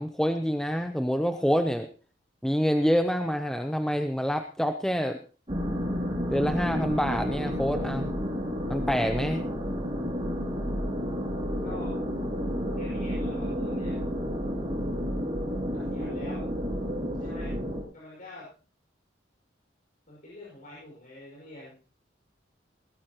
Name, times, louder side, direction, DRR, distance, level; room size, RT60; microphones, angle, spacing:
voice 1, 0.0-1.9 2.4-5.2 6.3-8.1 8.7-9.5, equal, 5° left, 7 dB, 0.6 m, -27 dB
sound 1, 5.5-17.8, equal, 30° right, 3.6 m, -31 dB
voice 2, 11.6-12.0 12.8-14.0 15.7-16.5 17.2-17.6 17.9-18.5 20.1-21.7, left 2 dB, 45° left, -5 dB, 5.7 m, -45 dB
19.0 x 13.5 x 3.0 m, 0.36 s
head